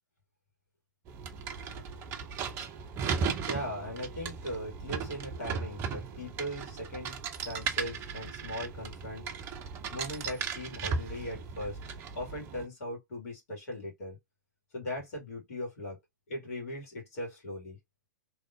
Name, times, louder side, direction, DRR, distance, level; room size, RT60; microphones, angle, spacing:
sound 1, 1.1-12.6, right 6 dB, 25° right, 0.5 m, -37 dB
voice 1, 3.5-9.3 9.9-11.8 12.1-14.2 14.7-16.0 16.3-17.8, equal, 50° left, 2.2 m, -39 dB
3.6 x 3.0 x 2.6 m
figure-of-eight pair, 110°, 10 cm